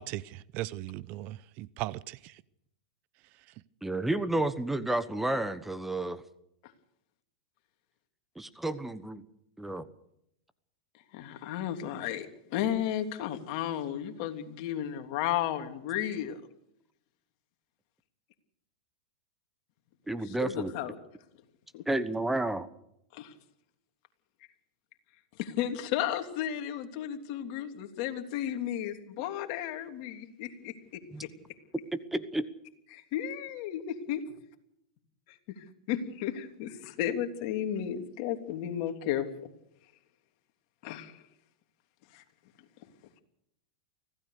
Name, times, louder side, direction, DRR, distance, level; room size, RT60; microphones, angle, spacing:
voice 1, 0.0-2.4, right 16 dB, 50° right, 0.8 m, -38 dB
voice 2, 3.8-6.2 8.4-9.2 9.6-9.8 20.1-20.7 21.9-22.7 31.1-31.2 31.9-32.5, right 2 dB, 5° right, 1.2 m, -31 dB
voice 3, 11.1-16.4 20.2-20.9 21.7-21.8 23.1-23.3 25.4-31.0 32.9-34.2 35.6-39.3 40.8-41.2 42.1-42.2, left 10 dB, 55° left, 3.2 m, -33 dB
25.0 x 16.0 x 6.7 m
hypercardioid pair, 115°, 4 cm